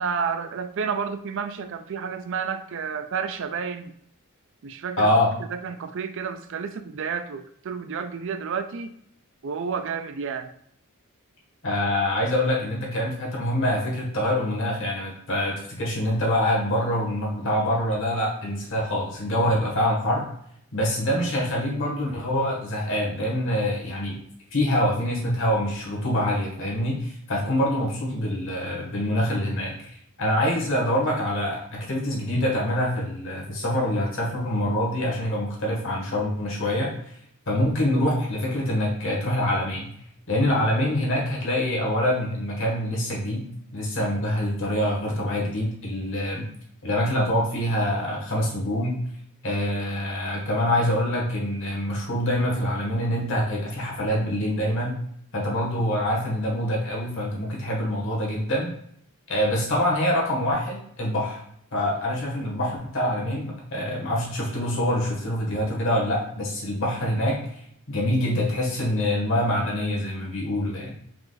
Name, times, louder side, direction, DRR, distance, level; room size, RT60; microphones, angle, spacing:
voice 1, 0.0-3.9 4.6-5.1 5.5-8.9 9.4-10.5, right 6 dB, 55° right, 10 dB, 0.4 m, -30 dB
voice 2, 5.0-5.3 11.6-20.2 20.7-24.2 24.5-37.2 37.5-39.9 40.3-43.5 43.7-46.5 46.8-48.9 49.4-54.9 55.3-58.7 59.3-61.4 61.7-67.6 67.9-70.9, left 1 dB, 60° left, -2 dB, 1.6 m, -25 dB
4.8 x 2.5 x 3.9 m, 0.69 s
head